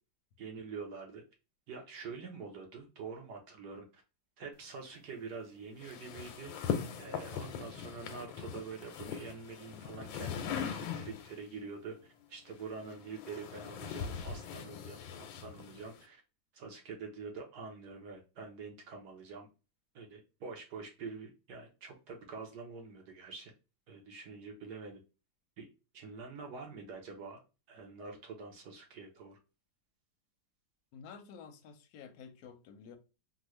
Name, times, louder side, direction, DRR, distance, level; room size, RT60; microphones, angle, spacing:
voice 1, 0.4-1.2 1.7-4.0 4.4-6.5 7.0-11.9 12.3-16.2 16.5-19.5 19.9-23.5 23.9-25.0 25.6-25.7 25.9-27.4 27.7-29.4, right 4 dB, 65° right, 1.2 m, -46 dB
sound 1, 5.8-11.4 12.5-16.0, left 7 dB, 90° left, 1.3 m, -40 dB
voice 2, 30.9-33.0, left 6 dB, 70° left, 0.9 m, -51 dB
3.7 x 2.2 x 3.0 m
omnidirectional pair, 2.0 m